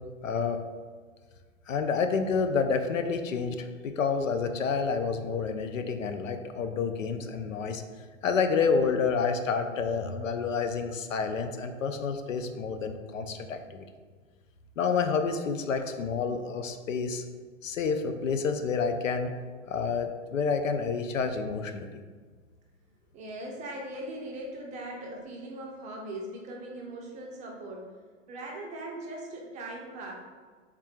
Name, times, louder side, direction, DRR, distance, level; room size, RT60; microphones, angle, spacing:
voice 1, 0.2-0.6 1.7-7.8 8.2-13.8 14.8-17.2 17.6-19.3 19.7-22.0, left 5 dB, 75° left, 7 dB, 0.5 m, -29 dB
voice 2, 23.1-27.9 28.3-30.1, right 1 dB, 20° right, -1 dB, 0.5 m, -40 dB
4.2 x 3.6 x 2.3 m, 1.5 s
figure-of-eight pair, 105°, 39 cm